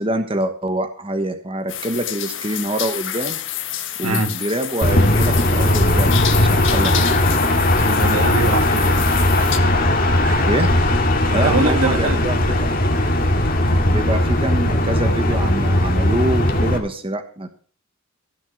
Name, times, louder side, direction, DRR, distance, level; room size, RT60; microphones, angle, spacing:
voice 1, 0.0-3.4 4.0-7.1 10.5-10.7 11.3-12.8 13.8-17.5, right 1 dB, 25° right, 1.2 m, -25 dB
sound 1, 1.7-9.6, left 11 dB, 55° left, 1.5 m, -29 dB
voice 2, 4.0-4.4 7.8-9.1 9.4-10.5 11.2-12.2 13.5-13.9, right 2 dB, 85° right, 2.2 m, -25 dB
sound 2, 4.8-16.8, left 1 dB, 40° left, 2.2 m, -18 dB
16.0 x 7.7 x 6.3 m
head